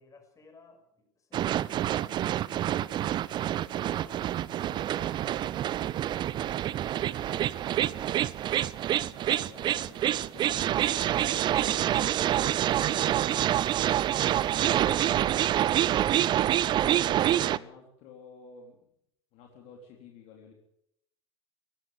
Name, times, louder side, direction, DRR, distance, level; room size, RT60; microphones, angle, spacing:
voice 1, 0.0-3.0 3.7-7.9, left 3 dB, 25° left, 5 dB, 6.2 m, -55 dB
sound 1, 1.3-17.6, right 12 dB, 30° right, 0.7 m, -27 dB
voice 2, 7.7-8.2 9.1-13.6 14.2-16.5 16.8-18.9 19.3-20.5, left 5 dB, 45° left, 1 dB, 3.9 m, -52 dB
18.0 x 16.0 x 9.3 m, 0.76 s
figure-of-eight pair, 80°, 14 cm